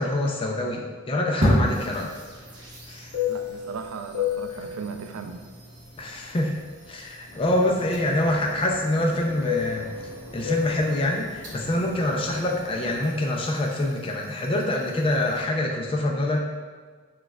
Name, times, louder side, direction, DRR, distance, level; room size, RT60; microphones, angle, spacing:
voice 1, 0.0-2.1 2.9-3.1 6.0-6.5 6.9-9.9 10.3-16.4, left 1 dB, 25° left, 0 dB, 0.3 m, -25 dB
sound 1, 1.4-15.4, equal, 55° right, 1.1 m, -34 dB
Fixed-wing aircraft airplane, 1.6-6.9 7.2-13.1, left 9 dB, 80° left, 0.7 m, -34 dB
voice 2, 3.3-5.4, right 5 dB, 80° right, 6 dB, 0.3 m, -37 dB
6.1 x 2.3 x 2.2 m, 1.5 s
head